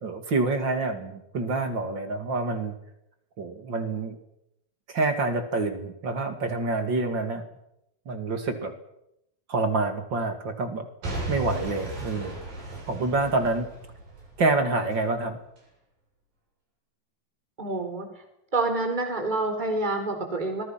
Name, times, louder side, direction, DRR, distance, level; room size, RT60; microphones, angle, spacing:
voice 1, 0.0-2.7 3.4-4.2 4.9-7.4 8.1-8.7 9.5-10.9 11.3-12.4 12.9-13.7 14.4-15.4, right 3 dB, 35° right, 7 dB, 2.6 m, -27 dB
Boom / Shatter / Crushing, 11.0-15.0 15.6-15.7, right 1 dB, 70° right, 9.3 m, -36 dB
voice 2, 17.6-18.1 18.5-20.6, right 2 dB, 10° right, 5 dB, 4.2 m, -27 dB
26.0 x 21.5 x 6.0 m, 0.81 s
omnidirectional pair, 4.2 m